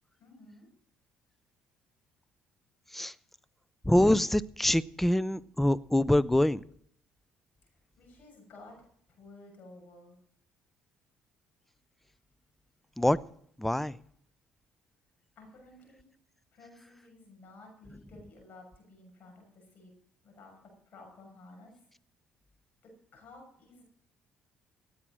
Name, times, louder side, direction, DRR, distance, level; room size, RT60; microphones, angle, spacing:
voice 1, 0.2-0.7 7.6-8.8 9.1-10.2 15.3-16.1 16.5-19.9 20.2-21.8 22.8-23.8, left 2 dB, 60° left, 6.6 m, -54 dB
voice 2, 3.9-6.6 13.0-13.2 13.6-14.0, left 1 dB, 5° left, 0.5 m, -25 dB
17.0 x 8.7 x 6.2 m
supercardioid pair, 80°, 4 cm